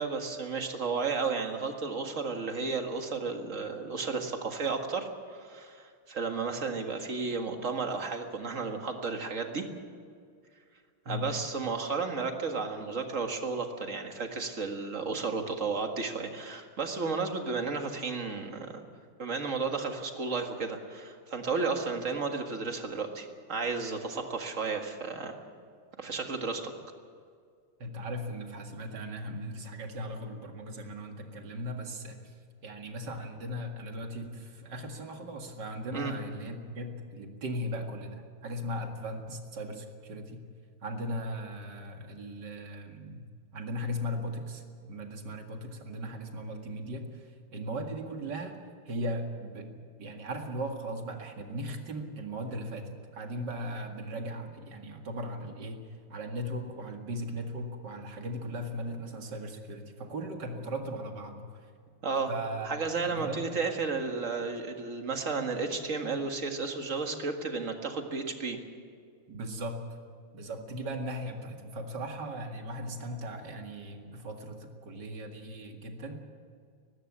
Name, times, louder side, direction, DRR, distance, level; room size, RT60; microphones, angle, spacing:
voice 1, 0.0-9.7 11.1-18.8 19.2-25.3 26.0-26.7 35.9-36.1 62.0-62.3 62.7-68.6, right 4 dB, 40° right, 4 dB, 2.0 m, -33 dB
voice 2, 27.8-32.3 32.6-40.4 40.8-43.2 43.5-48.6 48.9-55.8 56.1-61.5 62.3-62.7 62.9-63.6 69.3-69.8 70.3-76.2, equal, 55° right, 4 dB, 2.6 m, -38 dB
19.5 x 15.5 x 8.7 m, 2.2 s
omnidirectional pair, 2.3 m